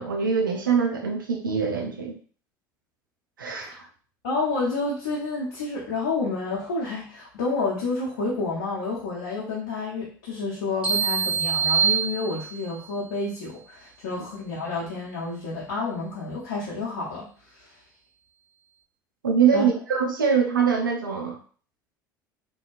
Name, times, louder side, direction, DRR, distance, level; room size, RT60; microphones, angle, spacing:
voice 1, 0.0-2.2 3.4-3.9 19.2-21.4, right 6 dB, 85° right, 3 dB, 0.5 m, -23 dB
voice 2, 4.2-17.3 17.5-17.7 19.5-19.6, left 3 dB, 75° left, -6 dB, 0.8 m, -29 dB
sound 1, 10.8-12.8, right 6 dB, 10° right, 1.1 m, -24 dB
2.7 x 2.2 x 2.4 m, 0.43 s
figure-of-eight pair, 65°, 11 cm